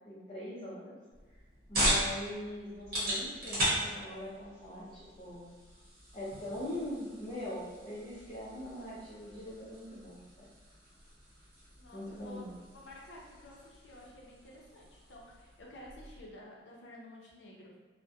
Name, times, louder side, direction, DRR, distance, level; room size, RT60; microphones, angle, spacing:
voice 1, 0.1-1.0 1.7-5.5 6.1-10.2 11.9-12.5, left 1 dB, 35° left, -10 dB, 0.5 m, -42 dB
sound 1, 1.1-16.2, equal, 55° right, 0.9 m, -38 dB
voice 2, 11.8-17.7, left 1 dB, 80° left, -2 dB, 0.5 m, -52 dB
2.3 x 2.1 x 2.6 m, 1.3 s
head